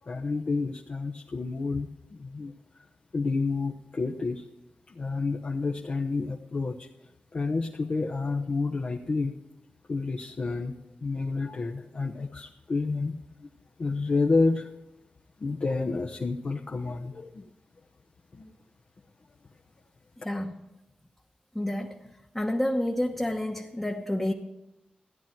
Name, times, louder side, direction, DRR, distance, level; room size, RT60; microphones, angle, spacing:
voice 1, 0.0-2.5 3.1-4.5 4.9-6.9 7.3-9.3 9.9-10.7 11.0-13.5 13.8-14.7 15.4-17.5 18.3-18.5, left 3 dB, 55° left, 0 dB, 1.0 m, -29 dB
voice 2, 20.2-20.6 21.5-22.1 22.3-24.3, left 1 dB, 10° left, 0 dB, 1.1 m, -29 dB
14.5 x 10.5 x 4.6 m, 0.94 s
wide cardioid pair, 80°, 3 cm